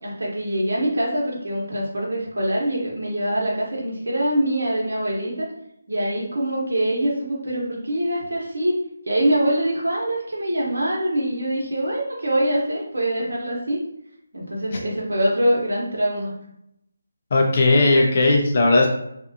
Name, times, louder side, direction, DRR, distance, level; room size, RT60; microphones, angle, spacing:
voice 1, 0.0-5.5 5.9-8.8 9.1-13.8 14.3-16.3, right 1 dB, 75° right, -3 dB, 0.9 m, -24 dB
voice 2, 17.3-18.9, left 2 dB, 40° left, 0 dB, 0.6 m, -17 dB
2.6 x 2.3 x 2.6 m, 0.78 s
figure-of-eight pair, 160°, 0 cm